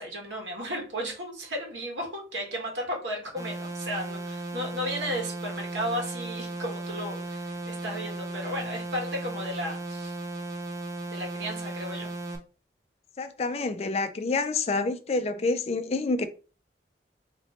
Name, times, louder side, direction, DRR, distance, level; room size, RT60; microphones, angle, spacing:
voice 1, 0.0-10.2 11.1-12.1, equal, 90° right, 1.5 m, -34 dB
sound 1, 3.4-12.4, right 2 dB, 20° right, 0.6 m, -36 dB
voice 2, 13.2-16.3, left 3 dB, 35° left, 0.4 m, -28 dB
3.1 x 3.0 x 4.2 m
head